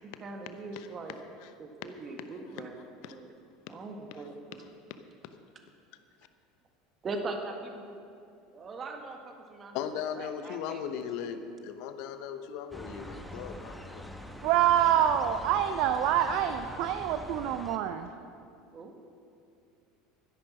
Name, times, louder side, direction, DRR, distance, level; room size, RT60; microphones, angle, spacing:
voice 1, 0.0-1.2 1.6-2.8 3.1-3.3 3.7-4.3 7.0-8.0 8.5-9.8 10.2-11.4 18.7-18.9, right 3 dB, 30° right, 3 dB, 1.7 m, -41 dB
voice 2, 0.7-1.5 2.5-2.6 3.0-3.2 3.7-3.8 9.7-14.0, left 8 dB, 60° left, 10 dB, 0.9 m, -38 dB
sound 1, 12.7-17.8, equal, ahead, 1.2 m, -44 dB
voice 3, 14.4-18.1, right 10 dB, 55° right, 9 dB, 0.6 m, -26 dB
13.0 x 10.5 x 6.2 m, 2.5 s
figure-of-eight pair, 70°, 0 cm